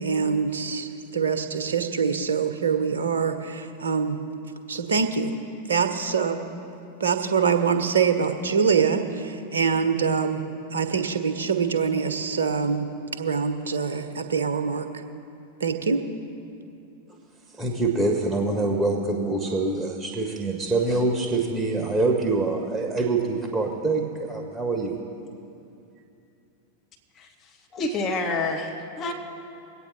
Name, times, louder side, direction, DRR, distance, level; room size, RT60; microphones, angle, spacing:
voice 1, 0.0-4.2 4.7-5.3 5.7-6.4 7.0-10.4 10.7-12.9 13.1-14.9 15.6-16.0, right 6 dB, 70° right, 7 dB, 1.0 m, -24 dB
voice 2, 17.5-25.0, right 3 dB, 5° right, 2 dB, 1.4 m, -25 dB
voice 3, 27.7-29.1, left 3 dB, 30° left, 2 dB, 1.5 m, -28 dB
22.5 x 8.9 x 4.1 m, 2.7 s
figure-of-eight pair, 90°, 0 cm